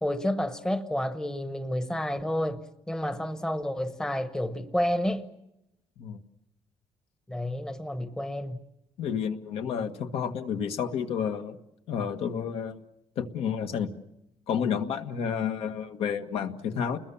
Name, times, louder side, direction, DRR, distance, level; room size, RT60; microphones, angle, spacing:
voice 1, 0.0-5.2 7.3-8.6, left 1 dB, 5° left, 1.0 m, -30 dB
voice 2, 9.0-11.6 11.9-12.8 13.1-13.9 14.5-17.0, left 7 dB, 70° left, 1.7 m, -30 dB
30.0 x 21.5 x 7.2 m
cardioid pair, 175°, 10 cm